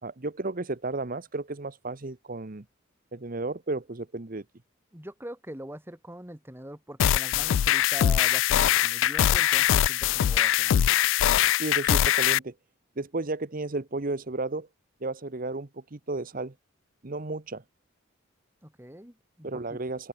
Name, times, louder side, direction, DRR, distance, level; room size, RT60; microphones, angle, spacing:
voice 1, 0.0-2.6 3.1-4.4 11.6-12.5 13.0-14.7 15.0-16.5 17.0-17.6 19.4-20.1, right 2 dB, 45° right, 1.0 m, -33 dB
voice 2, 4.9-10.8 18.6-19.8, right 1 dB, 10° right, 2.9 m, -42 dB
sound 1, 7.0-12.4, left 11 dB, 75° left, 0.3 m, -22 dB
open air
head